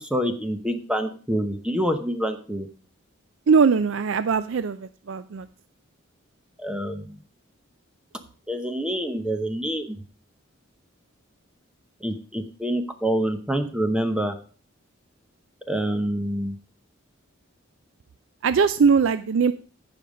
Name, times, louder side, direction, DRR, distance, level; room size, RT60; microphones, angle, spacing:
voice 1, 0.0-2.7 6.6-7.2 8.5-10.0 12.0-14.3 15.7-16.6, equal, 5° right, 7 dB, 0.9 m, -26 dB
voice 2, 3.5-5.5 18.4-19.5, right 5 dB, 65° right, 13 dB, 0.4 m, -20 dB
15.0 x 5.2 x 5.2 m, 0.41 s
head